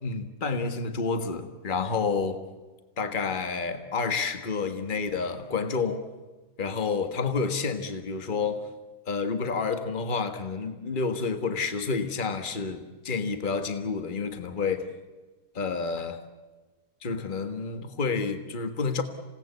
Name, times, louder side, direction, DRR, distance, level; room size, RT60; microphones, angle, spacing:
voice 1, 0.0-2.4 3.0-6.0 6.6-8.7 9.1-14.9 15.5-16.2 17.0-19.0, left 4 dB, 35° left, 8 dB, 1.6 m, -29 dB
27.5 x 18.0 x 8.1 m, 1.3 s
omnidirectional pair, 1.5 m